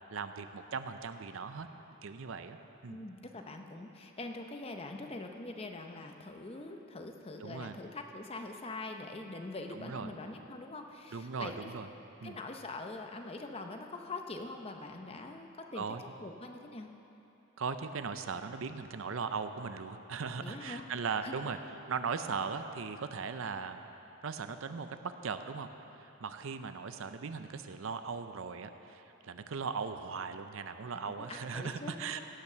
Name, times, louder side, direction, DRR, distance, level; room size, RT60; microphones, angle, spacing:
voice 1, 0.1-1.7 2.0-2.6 2.8-3.0 7.4-7.8 9.7-10.1 11.1-11.9 12.2-12.4 15.7-16.0 17.6-21.6 21.9-23.9 24.2-25.7 26.0-32.2, right 5 dB, 65° right, 9 dB, 0.5 m, -38 dB
voice 2, 2.9-11.7 12.2-16.9 20.4-20.9 21.2-21.3 30.9-32.2, left 2 dB, 25° left, 4 dB, 0.6 m, -43 dB
17.0 x 5.8 x 6.7 m, 2.9 s
head